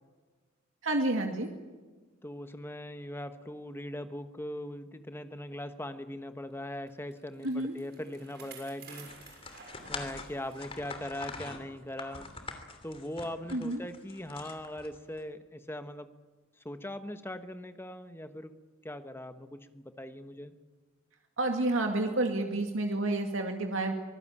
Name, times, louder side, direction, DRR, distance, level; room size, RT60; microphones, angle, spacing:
voice 1, 0.8-1.5 7.4-7.7 13.5-13.8 21.4-23.9, right 2 dB, 80° right, 3 dB, 2.3 m, -29 dB
voice 2, 2.2-9.1 9.9-12.4 12.8-16.1 16.6-18.5 18.8-20.5, left 1 dB, 10° left, 9 dB, 1.3 m, -40 dB
Bicycle, 6.9-10.8 11.2-11.3 12.1-12.2, right 5 dB, 55° right, 6.8 m, -52 dB
sound 1, 9.1-15.2, left 3 dB, 30° left, 3.0 m, -44 dB
25.0 x 19.0 x 8.8 m, 1.3 s
head